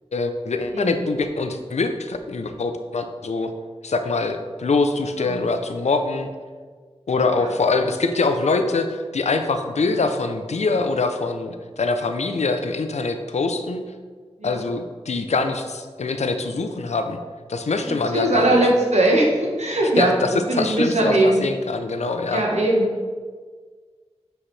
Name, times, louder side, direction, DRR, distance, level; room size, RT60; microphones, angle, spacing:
voice 1, 0.1-3.5 3.8-6.3 7.1-13.8 14.4-17.2 17.5-18.5 20.0-22.4, left 3 dB, 85° left, 7 dB, 0.6 m, -24 dB
voice 2, 17.8-20.1 20.5-21.4 22.3-22.9, right 1 dB, 90° right, -1 dB, 1.3 m, -20 dB
8.8 x 4.8 x 3.2 m, 1.5 s
wide cardioid pair, 60°, 11 cm